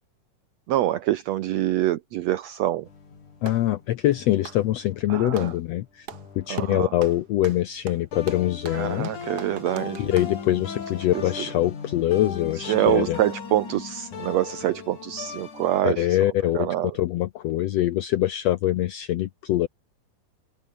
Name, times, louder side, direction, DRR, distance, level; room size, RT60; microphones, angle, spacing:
voice 1, 0.7-2.9 5.1-5.5 6.5-6.9 8.7-10.1 11.1-11.2 12.6-16.2 16.5-17.0, right 13 dB, 75° right, 1.5 m, -25 dB
Clapping, 2.8-3.7 4.3-5.6 6.0-6.3 6.6-10.4, right 8 dB, 55° right, 1.1 m, -42 dB
sound 1, 2.9-5.4 6.1-7.6 8.1-15.8, left 6 dB, 65° left, 5.3 m, -38 dB
voice 2, 3.4-6.1 6.4-9.1 10.0-13.2 15.8-19.7, left 14 dB, 80° left, 1.5 m, -24 dB
open air
omnidirectional pair, 3.8 m